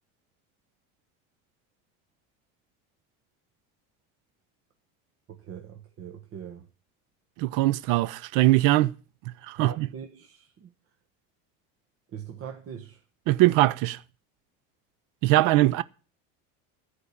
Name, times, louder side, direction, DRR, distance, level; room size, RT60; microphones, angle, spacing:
voice 1, 5.3-6.7 9.5-10.7 12.1-13.0, right 8 dB, 40° right, 1.2 m, -41 dB
voice 2, 7.4-8.9 9.5-9.9 13.3-14.0 15.2-15.8, right 17 dB, 65° right, 0.7 m, -21 dB
14.5 x 5.0 x 8.4 m
cardioid pair, 125°, 34 cm